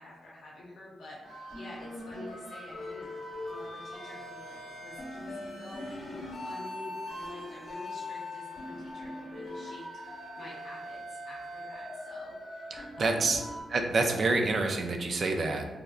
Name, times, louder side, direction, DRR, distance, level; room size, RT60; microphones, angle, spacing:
voice 1, 0.0-3.1 3.5-13.4, left 1 dB, 70° left, -6 dB, 0.5 m, -48 dB
sound 1, 1.2-13.6, left 1 dB, 55° left, 1.2 m, -41 dB
voice 2, 12.7-13.4 13.7-15.7, right 3 dB, 50° right, 4 dB, 0.3 m, -27 dB
3.3 x 2.4 x 2.3 m, 1.2 s
wide cardioid pair, 125°, 0 cm